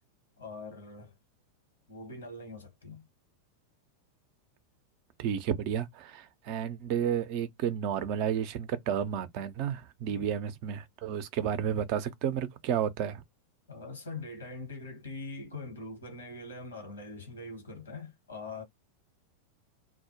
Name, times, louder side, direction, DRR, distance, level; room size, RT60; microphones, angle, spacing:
voice 1, 0.4-1.2 1.9-3.0 10.1-10.3 13.7-18.6, left 3 dB, 75° left, 1.0 m, -43 dB
voice 2, 5.2-13.2, right 9 dB, 45° right, 0.5 m, -31 dB
2.1 x 2.0 x 2.9 m
figure-of-eight pair, 90°, 0 cm